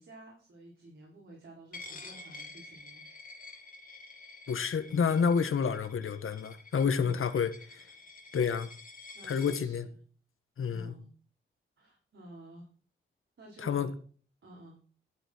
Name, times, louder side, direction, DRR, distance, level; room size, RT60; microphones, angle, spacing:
voice 1, 0.0-3.0 6.9-7.3 9.1-10.0 10.7-11.1 11.8-12.7 13.4-13.9 14.4-14.8, right 1 dB, 65° right, 5.3 m, -52 dB
Coin (dropping), 1.7-9.6, left 3 dB, 40° left, 2.2 m, -49 dB
voice 2, 4.5-7.9 8.3-8.7 9.3-9.9 10.6-10.9 13.6-13.9, left 6 dB, 80° left, 1.5 m, -29 dB
12.5 x 8.4 x 4.5 m
wide cardioid pair, 145°, 21 cm